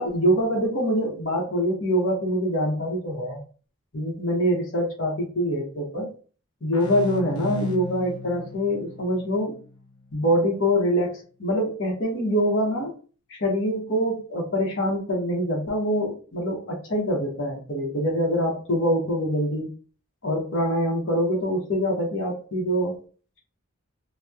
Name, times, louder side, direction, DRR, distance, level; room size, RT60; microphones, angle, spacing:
voice 1, 0.0-3.4 3.9-6.1 6.6-9.6 10.1-12.9 13.3-19.7 20.2-23.0, equal, 55° left, -2 dB, 0.8 m, -24 dB
sound 1, 6.7-10.2, left 2 dB, 85° left, 0.5 m, -35 dB
2.8 x 2.0 x 2.3 m, 0.38 s
head